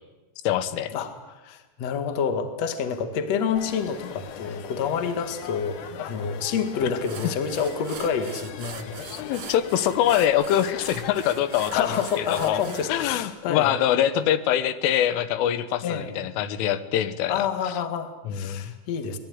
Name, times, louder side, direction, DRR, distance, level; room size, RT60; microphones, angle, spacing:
voice 1, 0.5-0.9 9.1-11.9 12.2-12.6 12.9-17.7 18.3-18.7, left 11 dB, 85° left, 13 dB, 3.6 m, -24 dB
voice 2, 1.4-9.1 11.7-13.7 14.2-14.3 15.8-16.2 17.3-19.2, left 6 dB, 50° left, 8 dB, 2.3 m, -28 dB
sound 1, 3.5-13.3, left 8 dB, 65° left, 2.1 m, -41 dB
sound 2, 6.5-6.6 7.0-12.9, right 8 dB, 55° right, 2.3 m, -42 dB
25.0 x 19.5 x 9.5 m, 1.1 s
omnidirectional pair, 5.6 m